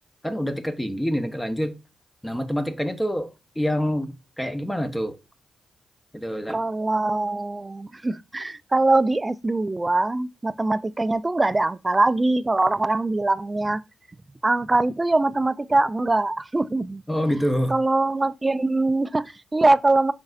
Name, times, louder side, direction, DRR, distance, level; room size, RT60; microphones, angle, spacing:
voice 1, 0.2-1.8 2.2-5.2 6.1-6.6 17.1-17.7, equal, 10° left, 0.8 m, -26 dB
voice 2, 6.5-13.8 14.4-17.0 17.7-20.1, right 2 dB, 25° right, 0.3 m, -22 dB
5.2 x 3.9 x 2.5 m
supercardioid pair, 55°, 0 cm